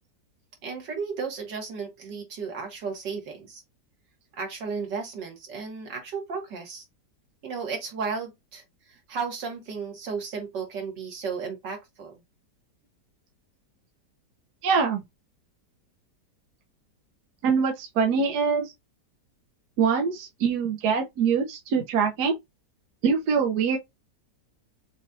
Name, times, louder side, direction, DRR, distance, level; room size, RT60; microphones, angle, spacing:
voice 1, 0.6-3.6 4.3-6.8 7.4-12.2, right 5 dB, 90° right, 2.2 m, -34 dB
voice 2, 14.6-15.0 17.4-18.7 19.8-22.3 23.0-23.8, right 5 dB, 70° right, 1.4 m, -24 dB
6.2 x 2.4 x 2.7 m
omnidirectional pair, 1.8 m